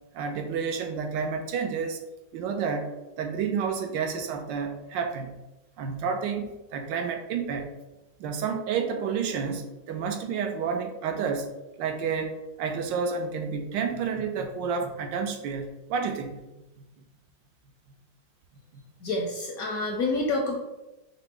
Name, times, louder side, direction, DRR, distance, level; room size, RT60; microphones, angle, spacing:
voice 1, 0.1-2.0 2.3-2.9 3.2-5.4 5.8-7.7 8.2-11.5 11.8-16.4 18.7-18.8, right 6 dB, 85° right, 5 dB, 1.3 m, -30 dB
voice 2, 19.0-20.6, left 2 dB, 70° left, 1 dB, 0.8 m, -28 dB
5.8 x 2.1 x 3.7 m, 1.0 s
omnidirectional pair, 2.0 m